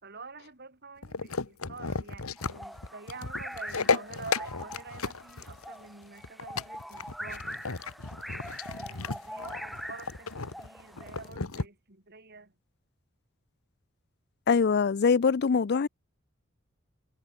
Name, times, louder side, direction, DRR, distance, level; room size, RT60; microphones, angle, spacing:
voice 1, 0.0-7.4 8.8-12.5, right 4 dB, 50° right, 3.5 m, -47 dB
sound 1, 1.0-11.7, left 4 dB, 90° left, 1.6 m, -34 dB
sound 2, 2.4-11.3, equal, ahead, 7.3 m, -43 dB
voice 2, 14.5-15.9, left 5 dB, 50° left, 0.4 m, -23 dB
head